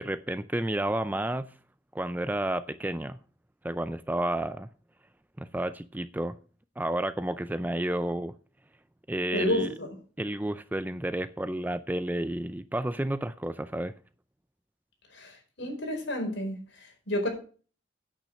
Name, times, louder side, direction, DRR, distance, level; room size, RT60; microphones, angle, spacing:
voice 1, 0.0-1.5 1.9-3.2 3.6-4.7 5.4-6.4 6.8-8.3 9.1-9.7 10.2-13.9, right 1 dB, 10° right, 13 dB, 0.4 m, -31 dB
voice 2, 9.3-9.9 15.1-17.3, left 1 dB, 70° left, 2 dB, 4.8 m, -31 dB
9.2 x 8.8 x 5.2 m, 0.38 s
head